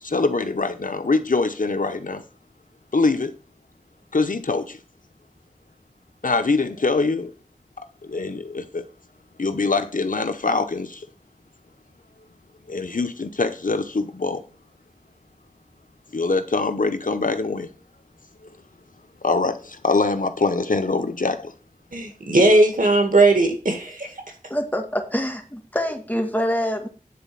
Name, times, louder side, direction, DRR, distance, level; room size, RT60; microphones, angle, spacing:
voice 1, 0.0-2.2 2.9-3.3 4.1-4.8 6.2-7.3 8.1-8.8 9.4-11.0 12.7-14.4 16.1-17.7 19.2-21.5, left 3 dB, 80° left, 0.9 m, -23 dB
voice 2, 21.9-24.1, right 2 dB, 85° right, 2.2 m, -18 dB
voice 3, 24.5-26.9, equal, 10° left, 1.9 m, -25 dB
9.6 x 4.1 x 7.0 m
wide cardioid pair, 40°, 14 cm